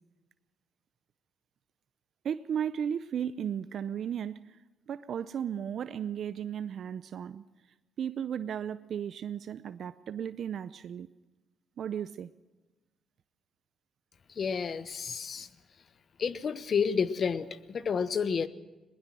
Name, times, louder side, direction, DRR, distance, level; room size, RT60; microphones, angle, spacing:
voice 1, 2.2-4.6 4.9-7.4 8.0-11.1 11.8-12.3, right 8 dB, 60° right, 13 dB, 0.6 m, -35 dB
voice 2, 14.3-15.5 16.2-18.5, left 6 dB, 50° left, 14 dB, 1.0 m, -30 dB
21.5 x 20.5 x 6.2 m, 1.1 s
cardioid pair, 90°, 0 cm